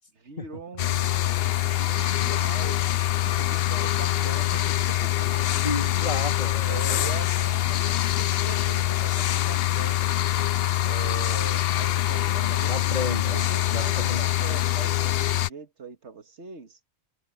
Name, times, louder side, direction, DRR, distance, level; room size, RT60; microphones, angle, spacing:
voice 1, 0.1-5.5 6.6-10.0 10.8-12.7 13.0-16.8, right 5 dB, 85° right, 2.1 m, -41 dB
sound 1, 0.8-15.5, left 13 dB, 65° left, 0.8 m, -24 dB
voice 2, 5.2-7.0 12.4-13.4 13.7-14.2, left 3 dB, 40° left, 3.0 m, -33 dB
omnidirectional pair, 1.2 m